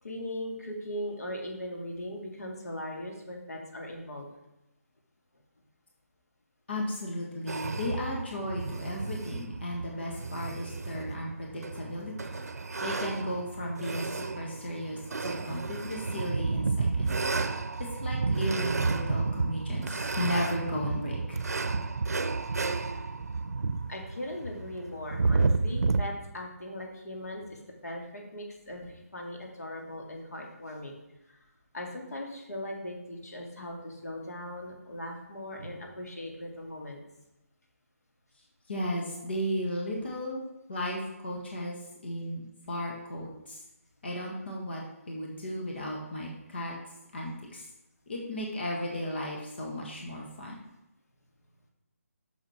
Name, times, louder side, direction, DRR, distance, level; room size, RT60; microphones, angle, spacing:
voice 1, 0.0-4.3 23.9-31.0 31.3-31.4 31.7-37.0, left 1 dB, 85° left, 0 dB, 2.3 m, -39 dB
voice 2, 6.7-12.4 12.8-17.1 18.0-21.4 38.7-40.4 40.7-41.8 42.0-43.6 44.0-46.8 47.1-47.7 48.1-50.6, equal, 45° left, -2 dB, 1.6 m, -35 dB
sound 1, 7.5-26.0, right 3 dB, 85° right, 0.6 m, -31 dB
7.4 x 6.6 x 4.3 m, 0.91 s
hypercardioid pair, 175°, 8 cm